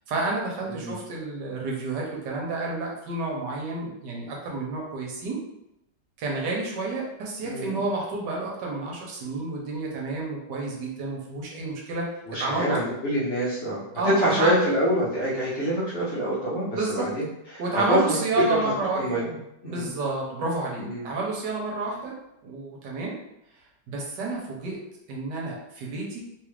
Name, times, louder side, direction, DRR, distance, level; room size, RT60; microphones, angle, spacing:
voice 1, 0.1-5.4 6.2-12.1 12.4-12.8 13.9-14.5 16.7-17.1 17.6-19.3 19.6-22.2 22.4-23.1 23.9-24.8 25.1-26.2, right 3 dB, 75° right, -2 dB, 1.4 m, -30 dB
voice 2, 7.4-7.8 12.3-17.3 17.5-17.6 17.9-19.4 19.6-19.9 20.8-21.1, equal, 50° left, -8 dB, 1.0 m, -26 dB
3.5 x 2.4 x 3.2 m, 0.84 s
omnidirectional pair, 2.0 m